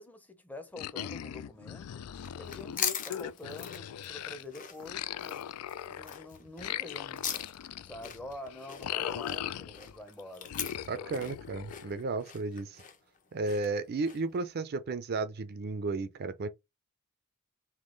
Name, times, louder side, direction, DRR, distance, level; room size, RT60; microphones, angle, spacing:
voice 1, 0.0-2.1 2.3-5.5 5.8-7.3 7.8-10.5 10.9-11.4, left 2 dB, 5° left, 0.7 m, -46 dB
sound 1, 0.8-4.4 4.8-10.0 10.5-12.2, left 10 dB, 75° left, 0.3 m, -39 dB
sound 2, 2.1-14.4, left 8 dB, 35° left, 0.8 m, -41 dB
voice 2, 10.9-12.8 13.3-16.5, right 3 dB, 45° right, 0.5 m, -33 dB
3.6 x 2.9 x 3.8 m
head